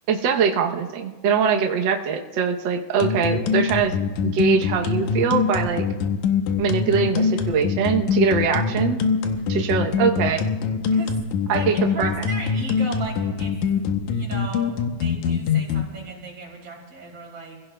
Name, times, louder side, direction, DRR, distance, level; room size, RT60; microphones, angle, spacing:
voice 1, 0.1-3.9 4.2-5.8 6.6-9.0 9.5-10.5 11.5-12.2, right 6 dB, 80° right, 3 dB, 1.0 m, -22 dB
sound 1, 3.0-15.8, left 6 dB, 80° left, 2.2 m, -23 dB
voice 2, 9.3-9.7 10.9-11.2 11.5-13.6 14.1-17.6, right 2 dB, 55° right, -3 dB, 4.7 m, -36 dB
28.0 x 16.0 x 2.2 m, 1.3 s
omnidirectional pair, 3.3 m